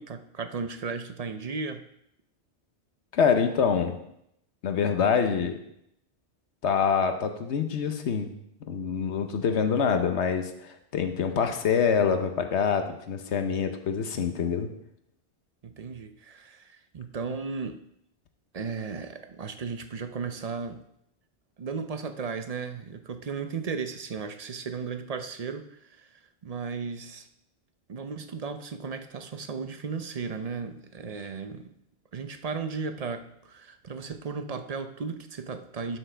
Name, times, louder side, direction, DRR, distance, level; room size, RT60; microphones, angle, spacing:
voice 1, 0.0-1.8 15.6-17.8 18.5-20.8 21.6-27.3 27.9-31.7 32.1-36.0, right 5 dB, 45° right, 8 dB, 0.5 m, -35 dB
voice 2, 3.1-4.0 4.6-5.6 6.6-8.3 8.7-14.7, left 6 dB, 85° left, 7 dB, 1.2 m, -25 dB
12.0 x 6.2 x 3.4 m, 0.77 s
omnidirectional pair, 1.1 m